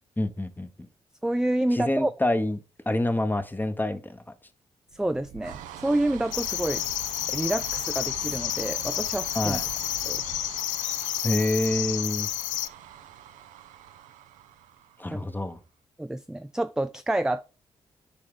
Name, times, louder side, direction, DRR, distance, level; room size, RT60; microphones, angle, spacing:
voice 1, 0.2-0.7 1.7-2.6 2.9-4.3 9.3-9.6 11.2-12.3 15.0-15.6, left 1 dB, 15° left, 1.1 m, -27 dB
voice 2, 1.2-2.1 4.9-6.8 7.3-9.6 10.1-10.2 15.1-15.3 16.0-17.5, right 1 dB, 5° right, 0.4 m, -28 dB
sound 1, 4.9-15.4, right 11 dB, 80° right, 0.5 m, -43 dB
sound 2, 6.3-12.7, left 14 dB, 80° left, 0.4 m, -30 dB
8.4 x 4.9 x 3.7 m
hypercardioid pair, 40°, 13 cm